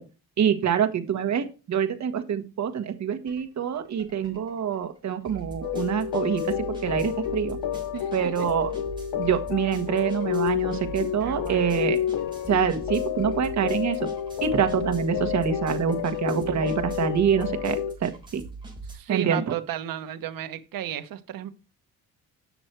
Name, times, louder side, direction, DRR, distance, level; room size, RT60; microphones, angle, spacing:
voice 1, 0.4-7.6 8.1-8.7 9.2-12.0 12.5-14.0 14.4-18.4 19.1-19.6, right 8 dB, 50° right, 1.4 m, -26 dB
sound 1, 3.3-3.4 3.7-18.9, right 3 dB, 10° right, 3.7 m, -42 dB
sound 2, 5.6-18.0, left 10 dB, 75° left, 0.9 m, -30 dB
voice 2, 7.9-8.5 11.2-12.0 14.8-14.9 16.5-17.2 18.9-21.5, right 11 dB, 65° right, 1.2 m, -35 dB
8.2 x 6.1 x 4.5 m
cardioid pair, 110°, 36 cm